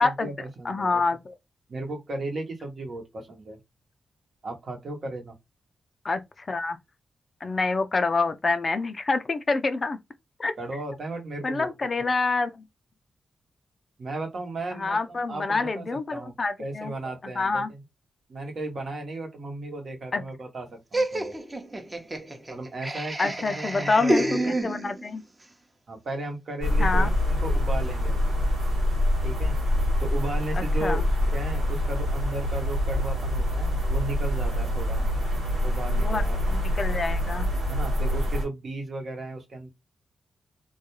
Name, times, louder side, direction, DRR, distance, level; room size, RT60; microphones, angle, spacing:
voice 1, 0.0-1.0 1.7-3.6 4.4-5.3 10.6-11.7 12.0-12.1 14.0-15.9 16.1-16.3 16.6-17.8 18.3-21.4 22.5-24.5 25.9-28.2 29.2-29.6 30.0-31.0 31.3-35.0 35.6-36.4 37.7-39.7, right 2 dB, 65° right, 0.9 m, -35 dB
voice 2, 0.6-1.3 6.0-6.8 7.4-10.0 10.4-10.5 11.4-12.6 14.7-16.9 17.4-17.7 20.1-20.2 23.2-25.2 26.8-27.1 30.5-31.1 36.0-36.2 36.5-37.5, left 3 dB, 50° left, 0.4 m, -27 dB
Laughter, 20.9-25.2, right 1 dB, 25° right, 0.7 m, -28 dB
sound 1, 26.6-38.4, left 1 dB, 90° right, 1.1 m, -25 dB
2.3 x 2.3 x 2.9 m
supercardioid pair, 40°, 0 cm